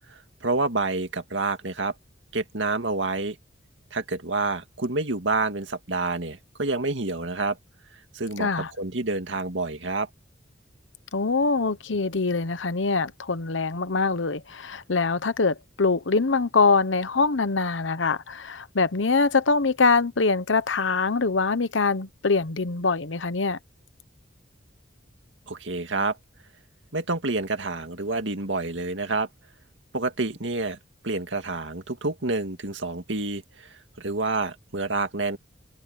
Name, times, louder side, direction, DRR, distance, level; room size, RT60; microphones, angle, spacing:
voice 1, 0.1-1.9 2.3-3.4 3.9-7.6 8.1-8.5 8.8-10.1 25.5-26.2 26.9-29.3 29.9-30.8 31.0-35.4, right 3 dB, 75° right, 2.2 m, -28 dB
voice 2, 8.4-8.7 11.1-23.6, left 4 dB, 85° left, 1.0 m, -24 dB
head